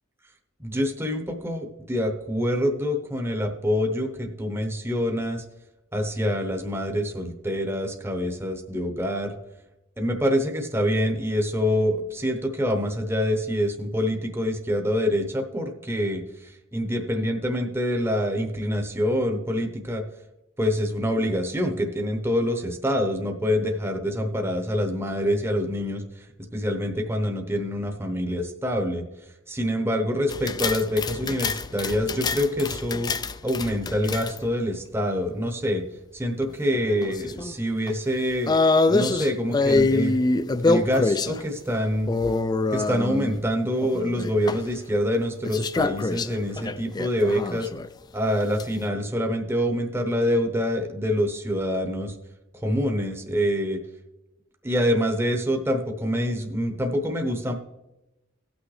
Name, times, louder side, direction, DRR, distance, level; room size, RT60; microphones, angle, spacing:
voice 1, 0.6-5.4 5.9-9.4 10.0-20.0 20.6-26.3 26.5-29.0 29.5-33.1 33.4-35.8 36.1-38.6 38.9-40.1 40.6-42.1 42.7-47.7 48.1-52.1 52.6-53.8 54.6-57.5, equal, 15° right, 4 dB, 0.8 m, -26 dB
sound 1, 30.3-34.5 36.4-37.6 37.9-38.0 38.5-41.4 42.1-43.4 43.8-44.6 45.4-47.9 48.4-48.6, left 3 dB, 20° left, 0.3 m, -25 dB
18.0 x 6.2 x 3.2 m, 0.98 s
head